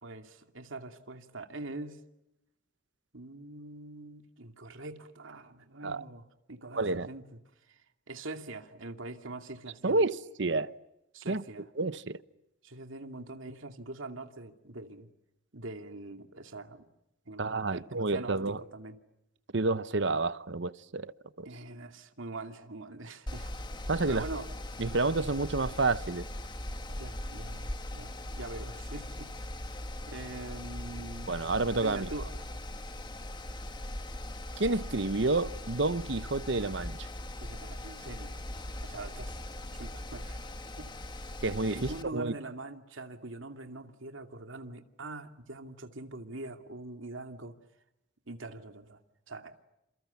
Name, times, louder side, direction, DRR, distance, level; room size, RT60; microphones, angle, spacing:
voice 1, 0.0-2.0 3.1-7.4 7.7-7.8 8.1-10.0 11.1-11.7 12.6-15.1 15.5-16.9 17.3-19.0 21.4-23.7 24.1-24.5 26.9-29.3 30.1-31.3 31.7-32.5 37.4-38.4 38.8-39.3 39.7-40.9 41.7-47.6 48.3-49.0 49.3-49.6, right 2 dB, 75° right, 2.5 m, -43 dB
voice 2, 6.7-7.1 9.8-10.7 11.3-11.4 11.8-12.2 17.4-18.6 19.5-21.1 21.4-21.5 23.9-24.2 24.8-26.3 31.3-32.1 34.6-37.1 41.4-42.3, right 3 dB, 60° right, 0.9 m, -29 dB
Mechanical fan, 23.3-42.0, left 1 dB, 20° left, 1.8 m, -40 dB
29.0 x 28.0 x 7.1 m
head